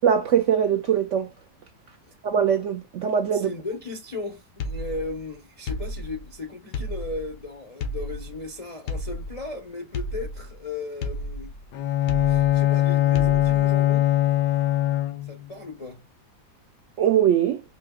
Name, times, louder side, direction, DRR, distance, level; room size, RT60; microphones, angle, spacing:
voice 1, 0.0-1.3 2.2-3.5 17.0-17.6, right 8 dB, 75° right, 0.7 m, -21 dB
voice 2, 3.3-11.5 12.3-14.1 15.2-16.0, left 3 dB, 55° left, 0.4 m, -36 dB
sound 1, 4.6-5.3 5.7-6.3 6.7-7.4 7.8-8.5 8.9-9.6 9.9-10.7 11.0-11.7 12.1-12.8 13.2-13.8, left 1 dB, 85° left, 1.4 m, -33 dB
Bowed string instrument, 11.7-15.5, left 14 dB, 70° left, 1.0 m, -21 dB
5.0 x 2.8 x 2.2 m
omnidirectional pair, 1.8 m